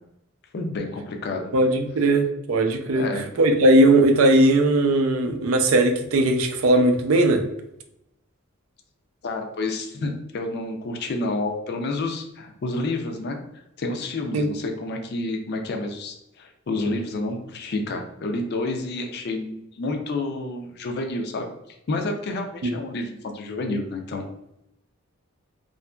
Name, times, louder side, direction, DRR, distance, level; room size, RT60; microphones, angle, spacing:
voice 1, 0.5-1.5 2.9-3.3 9.2-21.5 21.9-24.2, left 2 dB, 50° left, 3 dB, 0.4 m, -29 dB
voice 2, 1.5-3.1 3.4-7.4 14.3-14.5 22.6-22.7, right 1 dB, 85° right, 5 dB, 0.4 m, -18 dB
2.7 x 2.5 x 2.2 m, 0.84 s
head